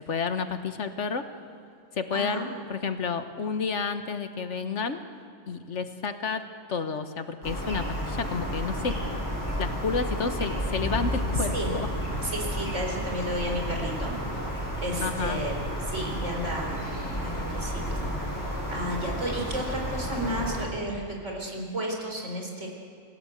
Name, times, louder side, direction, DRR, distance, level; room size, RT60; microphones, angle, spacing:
voice 1, 0.1-1.3 1.9-5.0 5.5-9.0 9.6-11.9 15.0-15.4, left 5 dB, 75° left, 9 dB, 1.6 m, -30 dB
voice 2, 2.1-2.5 11.5-11.8 12.2-14.1 14.8-15.6 15.9-18.0 18.3-18.4 18.7-22.7, equal, 80° right, 0 dB, 4.5 m, -32 dB
sound 1, 7.4-20.7, equal, 15° left, 7.2 m, -31 dB
28.0 x 16.5 x 8.1 m, 2.3 s
omnidirectional pair, 1.2 m